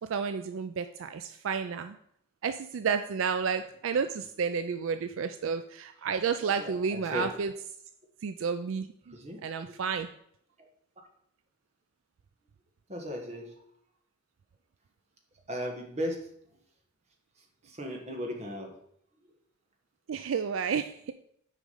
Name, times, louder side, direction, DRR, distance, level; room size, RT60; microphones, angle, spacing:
voice 1, 0.0-2.0 2.4-7.5 8.2-9.1 9.4-10.1 20.1-21.1, right 6 dB, 70° right, 9 dB, 0.4 m, -31 dB
voice 2, 6.4-7.4 9.1-9.4 12.9-13.5 15.5-16.2 17.7-18.7, equal, 35° right, 1 dB, 1.5 m, -36 dB
6.5 x 5.0 x 5.4 m, 0.69 s
head